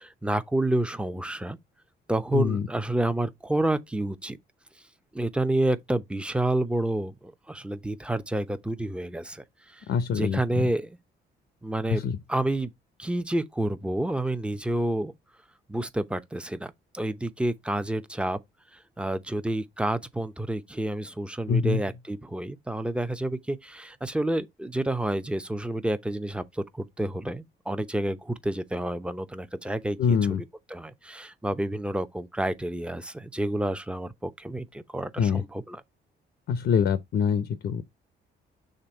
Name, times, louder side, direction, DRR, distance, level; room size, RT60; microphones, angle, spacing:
voice 1, 0.0-1.6 2.1-4.4 5.1-9.8 10.1-11.0 11.6-12.0 12.3-12.7 13.0-15.1 15.7-18.4 19.0-35.8, right 1 dB, 5° right, 0.7 m, -29 dB
voice 2, 2.3-2.6 9.9-10.7 11.9-12.2 21.5-21.8 30.0-30.4 35.2-35.4 36.5-37.8, left 6 dB, 65° left, 0.8 m, -25 dB
6.7 x 3.4 x 4.4 m
cardioid pair, 90°, 20 cm